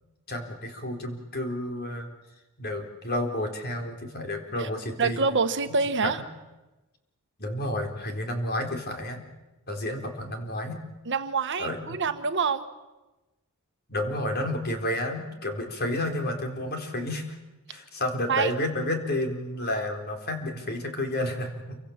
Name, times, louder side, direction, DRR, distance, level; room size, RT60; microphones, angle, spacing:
voice 1, 0.3-2.1 2.6-5.2 6.0-6.2 7.4-9.2 9.7-10.8 11.6-12.0 13.9-17.4 17.7-21.8, left 1 dB, 45° left, 3 dB, 4.1 m, -31 dB
voice 2, 5.0-6.2 11.1-12.7 18.3-18.5, right 4 dB, 55° right, 9 dB, 1.4 m, -26 dB
28.0 x 24.5 x 7.4 m, 1.1 s
head